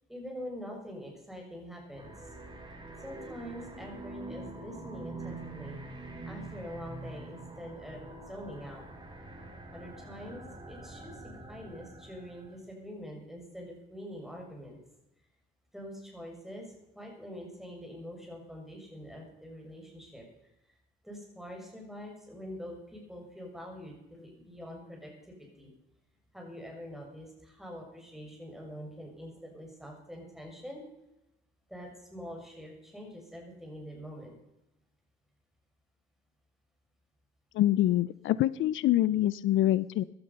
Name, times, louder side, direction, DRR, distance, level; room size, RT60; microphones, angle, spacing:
voice 1, 0.1-2.3 3.0-8.8 9.7-14.8 15.7-20.2 21.0-25.7 26.3-30.8 31.7-34.3, equal, ahead, 0 dB, 6.6 m, -45 dB
sound 1, 1.9-12.6, right 2 dB, 25° right, 3.7 m, -45 dB
voice 2, 37.6-40.0, left 14 dB, 75° left, 19 dB, 0.5 m, -25 dB
16.0 x 12.0 x 5.6 m, 0.92 s
cardioid pair, 90°, 20 cm